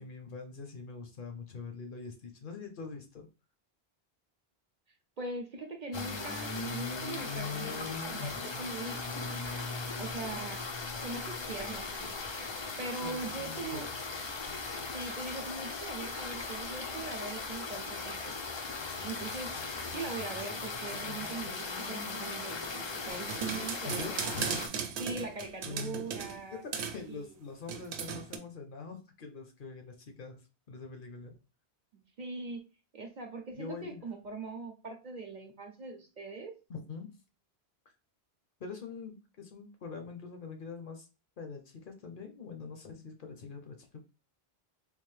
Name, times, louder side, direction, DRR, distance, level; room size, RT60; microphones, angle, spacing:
voice 1, 0.0-3.3 13.0-14.0 23.8-24.8 25.6-26.1 26.5-30.4 30.7-31.4 33.6-34.1 36.7-37.1 38.6-41.1 41.4-44.0, left 4 dB, 60° left, 4 dB, 0.8 m, -44 dB
voice 2, 5.2-9.4 10.0-10.6 11.0-12.3 12.8-13.9 14.9-18.4 19.0-19.6 19.9-24.4 25.0-26.6 27.1-27.3 31.9-32.7 32.9-36.6, right 3 dB, 50° right, 3 dB, 0.7 m, -41 dB
sound 1, 5.9-24.7, left 4 dB, 40° left, 0.4 m, -38 dB
sound 2, 23.1-26.4 26.7-27.0 27.7-28.4, right 7 dB, 90° right, 0.9 m, -37 dB
3.6 x 2.6 x 3.2 m, 0.32 s
omnidirectional pair, 1.1 m